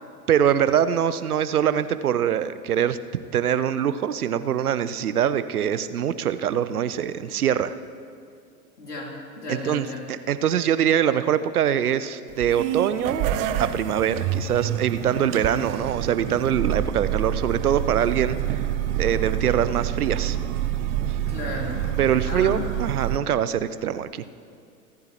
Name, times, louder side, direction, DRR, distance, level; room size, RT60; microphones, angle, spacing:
voice 1, 0.3-3.0 3.3-7.7 9.5-13.3 13.6-18.7 19.0-20.4 22.0-24.2, right 9 dB, 70° right, 14 dB, 0.8 m, -23 dB
voice 2, 8.8-10.0 21.3-21.9 22.3-22.6, left 2 dB, 80° left, -3 dB, 3.6 m, -34 dB
sound 1, 12.3-23.2, right 11 dB, 20° right, 0.4 m, -27 dB
25.0 x 14.0 x 3.0 m, 2.3 s
figure-of-eight pair, 95°, 46 cm